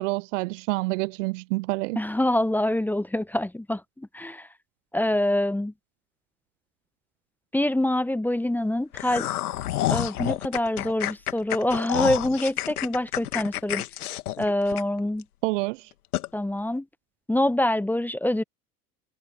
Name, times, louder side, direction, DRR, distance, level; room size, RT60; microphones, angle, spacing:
voice 1, 0.0-2.0 15.4-15.9, right 24 dB, 55° right, 0.5 m, -27 dB
voice 2, 2.0-4.5 4.9-5.7 7.5-9.3 9.9-13.8 14.4-15.2 16.3-16.9 17.3-18.4, left 1 dB, 5° left, 0.8 m, -25 dB
sound 1, 8.9-15.2 15.6-15.7 16.1-16.3, left 13 dB, 75° left, 2.0 m, -29 dB
hypercardioid pair, 80°, 45 cm